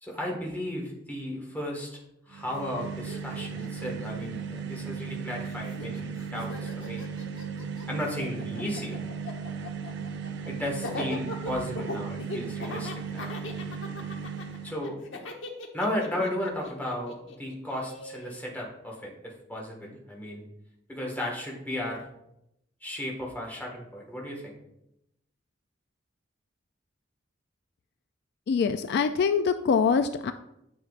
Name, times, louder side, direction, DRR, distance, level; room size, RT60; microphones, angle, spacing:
voice 1, 0.0-2.0 2.2-7.1 7.9-9.0 10.5-13.3 14.6-15.0 15.7-20.4 20.9-22.1 22.8-24.5, left 1 dB, 10° left, -2 dB, 1.6 m, -34 dB
sound 1, 2.3-14.9, right 6 dB, 65° right, 0.5 m, -36 dB
Laughter, 2.5-2.6 2.8-5.1 5.4-18.4, left 2 dB, 90° left, 1.0 m, -40 dB
voice 2, 28.5-30.3, left 5 dB, 60° left, 9 dB, 0.3 m, -24 dB
9.7 x 6.3 x 2.5 m, 0.83 s
head